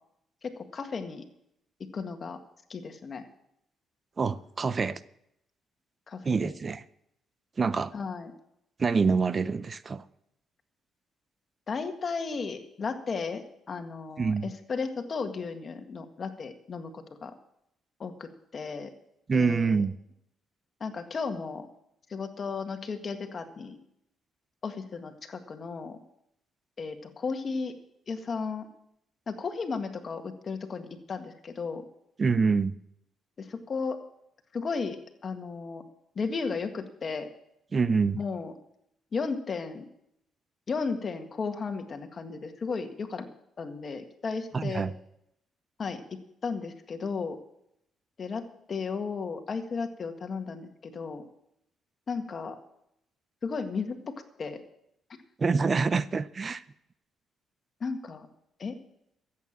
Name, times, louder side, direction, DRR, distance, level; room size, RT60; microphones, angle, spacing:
voice 1, 0.4-1.3 1.9-2.4 2.7-3.2 6.1-6.5 7.9-8.3 11.7-17.3 18.0-18.9 19.3-19.8 20.8-21.7 22.1-23.8 24.6-26.0 26.8-27.7 28.1-28.7 29.3-31.8 33.4-34.0 34.5-35.8 36.2-37.3 38.2-38.5 39.1-39.8 40.7-43.3 43.6-44.8 45.8-46.0 46.4-47.4 48.2-48.4 48.7-51.2 52.1-52.6 53.4-54.6 57.8-58.3 58.6-58.8, left 4 dB, 45° left, 6 dB, 1.8 m, -34 dB
voice 2, 4.2-5.0 6.2-6.8 7.6-7.9 8.8-10.0 14.2-14.5 19.3-19.9 32.2-32.8 37.7-38.2 44.5-44.9 55.4-56.6, right 5 dB, 35° right, 16 dB, 0.5 m, -26 dB
14.0 x 8.5 x 7.4 m, 0.78 s
cardioid pair, 90°, 0 cm